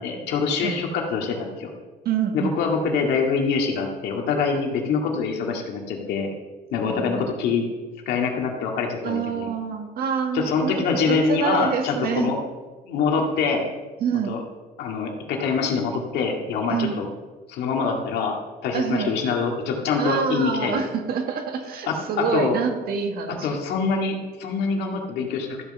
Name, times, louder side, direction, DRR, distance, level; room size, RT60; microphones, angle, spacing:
voice 1, 0.0-1.7 2.3-6.3 6.7-7.6 8.1-9.5 10.3-12.4 12.8-13.7 14.3-14.4 14.8-17.1 17.5-18.4 18.6-20.8 21.9-22.6 23.4-25.7, left 5 dB, 80° left, 1 dB, 2.1 m, -25 dB
voice 2, 2.0-2.8 6.9-7.3 9.0-12.3 14.0-14.4 16.7-17.0 18.7-19.1 20.0-23.5, right 6 dB, 60° right, 4 dB, 1.7 m, -27 dB
13.5 x 5.6 x 6.7 m, 1.3 s
cardioid pair, 110°, 17 cm